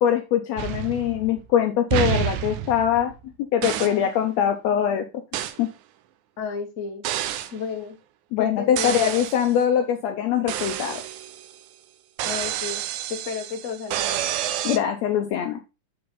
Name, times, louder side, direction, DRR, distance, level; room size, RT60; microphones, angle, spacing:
voice 1, 0.0-3.1 3.5-5.0 5.6-5.7 8.3-11.0 14.6-15.6, left 9 dB, 75° left, 6 dB, 1.6 m, -22 dB
sound 1, 0.6-1.5 1.9-3.2 3.6-4.1 5.3-5.6 7.0-7.6 8.8-9.5 10.5-11.6 12.2-14.8, right 11 dB, 85° right, 2.1 m, -29 dB
voice 2, 6.4-7.0 7.5-8.0 8.4-9.2 12.2-12.8 13.1-14.3, left 6 dB, 45° left, 3 dB, 1.0 m, -32 dB
7.5 x 4.1 x 4.0 m, 0.29 s
omnidirectional pair, 3.6 m